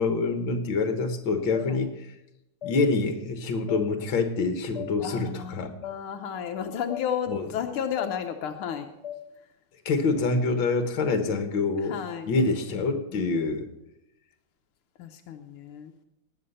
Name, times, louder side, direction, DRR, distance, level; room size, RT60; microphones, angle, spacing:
voice 1, 0.0-2.1 2.6-5.7 7.3-7.5 9.9-12.0 12.3-13.7, left 3 dB, 65° left, 8 dB, 2.1 m, -26 dB
sound 1, 1.5-1.7 2.6-2.8 3.7-3.8 4.7-4.9 5.8-6.0 6.9-7.1 8.0-8.1 9.0-9.2, left 11 dB, 20° left, 1.5 m, -36 dB
voice 2, 5.0-8.9 11.8-12.8 13.1-13.3 15.0-15.9, left 8 dB, 85° left, 5 dB, 1.8 m, -33 dB
19.0 x 8.5 x 5.6 m, 0.89 s
omnidirectional pair, 2.3 m